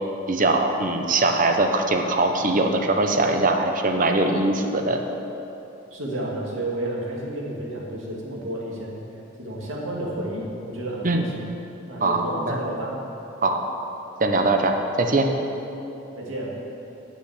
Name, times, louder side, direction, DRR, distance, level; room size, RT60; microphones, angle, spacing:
voice 1, 0.3-5.0 11.0-11.2 12.0-12.6 13.4-13.6 14.2-15.3, right 2 dB, 45° right, 5 dB, 0.8 m, -21 dB
voice 2, 5.9-9.0 9.4-11.4 11.9-13.0 16.2-16.6, right 1 dB, 85° right, -4 dB, 2.3 m, -31 dB
9.6 x 7.1 x 7.3 m, 2.9 s
head